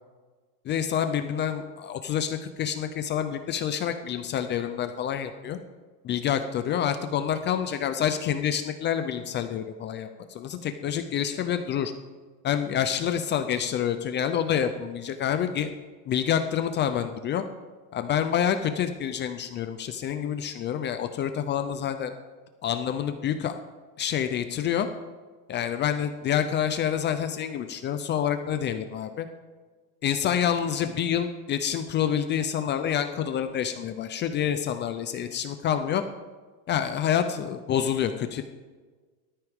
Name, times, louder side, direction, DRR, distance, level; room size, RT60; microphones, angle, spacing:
voice 1, 0.7-5.6 6.0-11.9 12.4-15.7 16.1-17.4 17.9-22.1 22.6-23.5 24.0-24.9 25.5-29.3 30.0-36.0 36.7-38.4, left 9 dB, 25° left, 9 dB, 0.4 m, -27 dB
18.0 x 13.0 x 3.6 m, 1.4 s
supercardioid pair, 145°, 49 cm